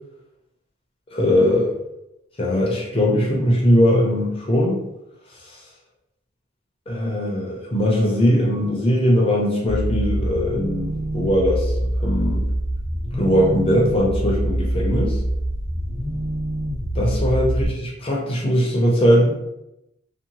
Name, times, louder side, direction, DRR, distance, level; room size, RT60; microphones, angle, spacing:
voice 1, 1.1-1.7 2.4-4.8 5.5-5.6 6.9-12.5 13.2-15.2 16.9-19.4, equal, 30° left, -3 dB, 0.6 m, -20 dB
sound 1, 9.7-17.7, right 1 dB, 75° right, 1.1 m, -25 dB
2.7 x 2.1 x 2.8 m, 0.86 s
head